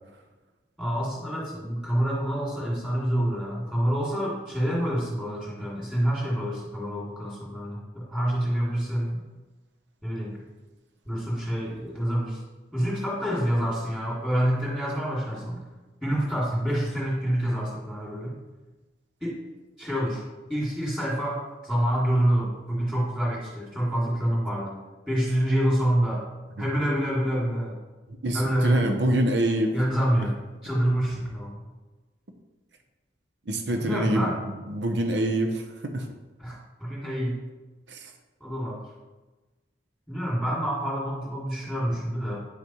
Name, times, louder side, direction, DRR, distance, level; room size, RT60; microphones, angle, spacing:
voice 1, 0.8-9.2 10.0-10.4 11.0-12.4 12.7-15.6 16.0-18.3 19.2-19.4 19.8-20.2 20.5-24.8 25.1-26.2 26.6-27.8 28.3-29.0 29.7-30.4 30.6-31.6 33.8-34.4 36.4-37.4 38.4-38.8 40.1-42.4, equal, 5° right, -7 dB, 2.4 m, -27 dB
voice 2, 28.2-29.7 33.5-34.3 34.7-36.1 37.9-38.0, right 1 dB, 80° right, 5 dB, 0.9 m, -25 dB
9.8 x 5.8 x 3.1 m, 1.2 s
head